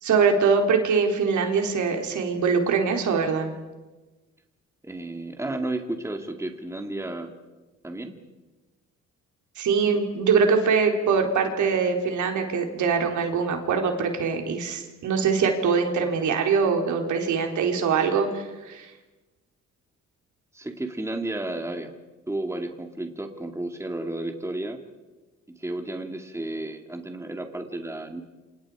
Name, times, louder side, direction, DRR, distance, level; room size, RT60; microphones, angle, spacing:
voice 1, 0.0-3.5 9.6-18.9, right 5 dB, 75° right, 3 dB, 3.9 m, -23 dB
voice 2, 4.8-7.3 7.8-8.2 20.5-21.9 22.3-24.8 25.6-28.2, right 2 dB, 10° right, 4 dB, 2.6 m, -32 dB
28.0 x 27.0 x 5.0 m, 1.2 s
cardioid pair, 90°, 30 cm